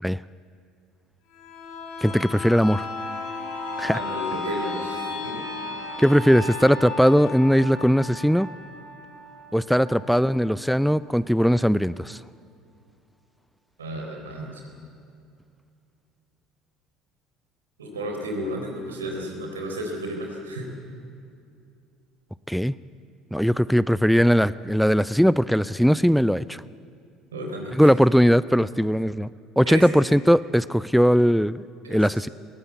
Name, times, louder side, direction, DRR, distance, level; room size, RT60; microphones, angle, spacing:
sound 1, 1.3-10.9 11.3-11.4, left 3 dB, 70° left, 7.7 m, -35 dB
voice 1, 2.0-2.9 3.8-4.0 6.0-8.5 9.5-12.2 22.5-22.8 23.3-26.6 27.7-29.3 29.6-32.3, equal, ahead, 18 dB, 0.4 m, -19 dB
voice 2, 3.9-5.5 9.9-10.0 11.4-11.5 13.8-14.6 17.8-20.7 27.3-27.9 29.6-29.9 31.8-32.2, right 1 dB, 85° right, 1 dB, 3.8 m, -33 dB
20.5 x 17.5 x 8.4 m, 2.5 s
hypercardioid pair, 65°, 0 cm